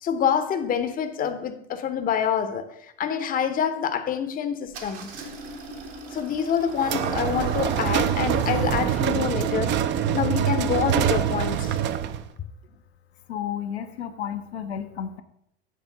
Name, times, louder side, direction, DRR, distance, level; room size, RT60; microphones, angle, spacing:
voice 1, 0.0-5.2 6.1-11.8, left 8 dB, 25° left, 0.7 m, -27 dB
Engine starting, 4.7-12.1, right 5 dB, 60° right, 1.4 m, -37 dB
sound 1, 6.8-12.3, right 9 dB, 35° right, 0.5 m, -25 dB
voice 2, 13.3-15.2, left 9 dB, 80° left, 0.7 m, -32 dB
8.3 x 3.4 x 5.7 m
hypercardioid pair, 80°, 32 cm